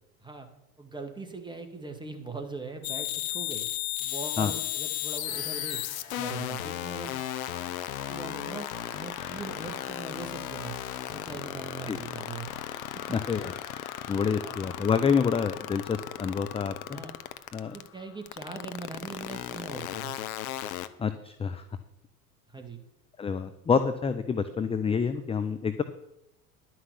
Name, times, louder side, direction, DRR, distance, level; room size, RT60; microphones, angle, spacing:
voice 1, 0.8-3.7 4.0-5.8 6.2-7.1 8.1-8.7 8.9-10.8 11.1-12.7 14.1-14.2 14.4-14.6 16.9-17.1 17.6-20.1 22.5-22.8, right 3 dB, 10° right, 5 dB, 2.0 m, -41 dB
sound 1, 2.8-17.9 18.3-20.9, left 14 dB, 65° left, 0.9 m, -34 dB
sound 2, 5.2-18.9, left 8 dB, 45° left, 1.4 m, -45 dB
voice 2, 13.1-13.5 14.1-17.0 17.5-17.7 21.0-21.6 23.2-25.8, left 6 dB, 15° left, 10 dB, 0.6 m, -27 dB
11.0 x 6.1 x 8.3 m, 0.84 s
hypercardioid pair, 80°, 45 cm